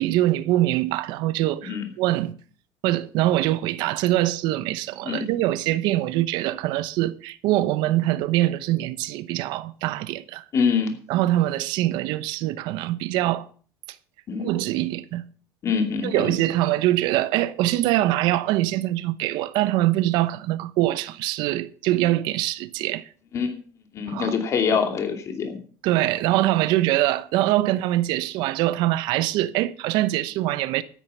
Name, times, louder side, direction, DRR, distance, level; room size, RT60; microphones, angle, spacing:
voice 1, 0.0-2.3 2.8-10.4 11.1-13.5 14.4-15.2 16.0-23.1 24.1-24.3 25.8-30.8, right 15 dB, 70° right, 0.9 m, -23 dB
voice 2, 10.5-10.9 14.3-14.5 15.6-16.3 23.3-23.6 23.9-25.6, left 6 dB, 40° left, 2.7 m, -24 dB
13.0 x 9.4 x 5.6 m
cardioid pair, 135°, 8 cm